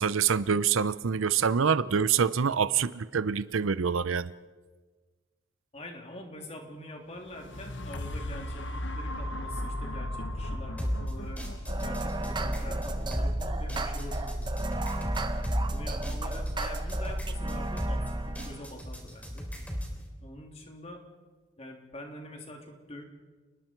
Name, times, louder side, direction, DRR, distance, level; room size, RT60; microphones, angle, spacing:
voice 1, 0.0-4.3, right 6 dB, 80° right, 0.6 m, -26 dB
voice 2, 5.7-11.4 11.8-14.9 15.7-19.5 20.2-21.0 21.6-23.0, left 1 dB, 30° left, 3.2 m, -45 dB
sound 1, 7.1-15.2 15.8-15.9, left 1 dB, 65° left, 1.4 m, -37 dB
sound 2, 10.8-20.0, equal, 5° left, 3.6 m, -36 dB
sound 3, 11.7-18.7, right 1 dB, 20° right, 1.0 m, -33 dB
29.5 x 20.5 x 4.6 m
head